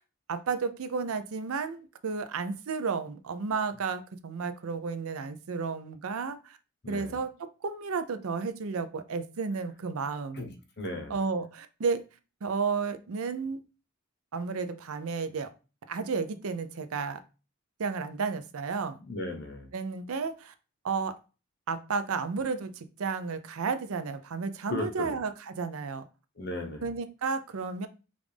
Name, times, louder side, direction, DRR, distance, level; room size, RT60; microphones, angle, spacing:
voice 1, 0.3-6.6 6.9-7.3 7.6-10.4 11.1-12.0 12.4-13.6 14.3-15.5 15.9-17.2 17.8-19.0 19.7-20.5 20.8-21.2 21.7-26.1 26.8-27.9, right 5 dB, 80° right, 11 dB, 0.5 m, -32 dB
voice 2, 6.8-7.2 10.3-11.2 18.9-19.7 24.7-25.2 26.4-27.0, left 2 dB, 50° left, 3 dB, 0.9 m, -36 dB
5.1 x 2.5 x 3.3 m, 0.32 s
head